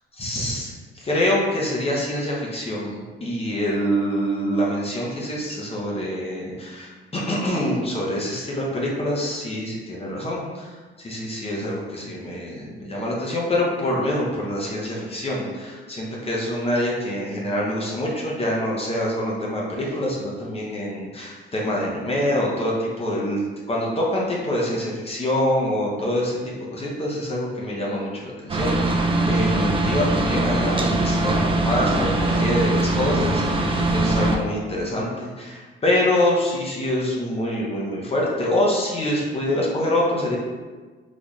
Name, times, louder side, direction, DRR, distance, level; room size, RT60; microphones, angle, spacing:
voice 1, 0.1-0.7 0.9-23.4 23.7-26.4 26.7-40.4, left 1 dB, 30° left, -4 dB, 0.8 m, -25 dB
sound 1, 28.5-34.4, right 2 dB, 25° right, 0.5 m, -22 dB
4.0 x 2.4 x 3.0 m, 1.4 s
cardioid pair, 90°, 20 cm